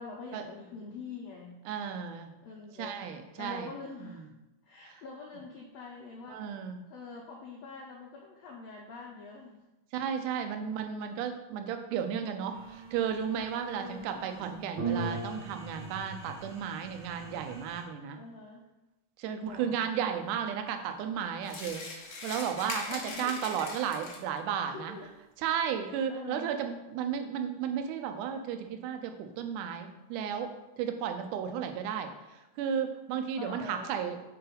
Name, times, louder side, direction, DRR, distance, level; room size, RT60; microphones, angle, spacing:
voice 1, 0.0-1.6 2.4-3.0 3.4-4.2 4.6-6.4 6.9-9.6 13.7-14.2 18.2-18.7 19.4-19.8 22.9-23.3 24.7-25.1 26.1-26.5 33.4-33.9, left 3 dB, 90° left, -1 dB, 1.4 m, -44 dB
voice 2, 1.7-2.3 2.8-3.7 4.0-4.2 4.9-5.0 6.3-6.8 9.9-18.2 19.2-25.0 25.4-30.5 30.8-34.2, right 8 dB, 80° right, 6 dB, 2.0 m, -34 dB
sound 1, 12.5-17.8, right 4 dB, 45° right, 1.6 m, -39 dB
sound 2, 21.4-24.4, left 3 dB, 65° left, 1.5 m, -41 dB
4.9 x 4.6 x 5.1 m, 0.99 s
omnidirectional pair, 3.8 m